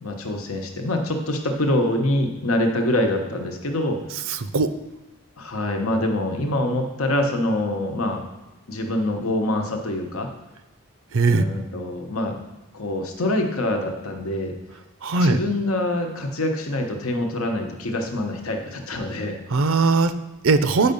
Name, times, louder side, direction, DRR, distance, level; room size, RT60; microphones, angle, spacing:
voice 1, 0.0-4.0 5.4-8.2 8.7-10.3 11.3-12.4 12.7-14.5 15.1-19.4, left 1 dB, 80° left, 3 dB, 1.1 m, -25 dB
voice 2, 4.3-4.7 11.1-11.5 15.0-15.4 19.5-20.9, right 3 dB, 65° right, 11 dB, 0.6 m, -20 dB
8.6 x 5.6 x 5.3 m, 1.1 s
head